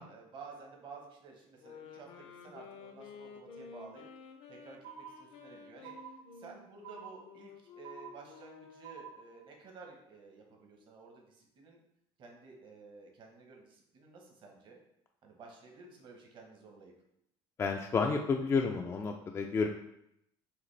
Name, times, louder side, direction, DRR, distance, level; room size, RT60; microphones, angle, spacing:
voice 1, 0.0-4.0 4.5-5.9 6.4-11.8 12.2-14.8 15.2-16.9, right 4 dB, 50° right, 1 dB, 1.1 m, -53 dB
sound 1, 1.6-9.1, left 5 dB, 65° left, 0.6 m, -52 dB
sound 2, 4.8-5.5 5.8-6.5 6.8-7.5 7.8-8.5 8.8-9.5, right 8 dB, 85° right, 0.8 m, -49 dB
voice 2, 17.6-19.7, left 4 dB, 25° left, 2 dB, 0.3 m, -30 dB
4.9 x 3.1 x 3.3 m, 0.80 s
cardioid pair, 120°, 11 cm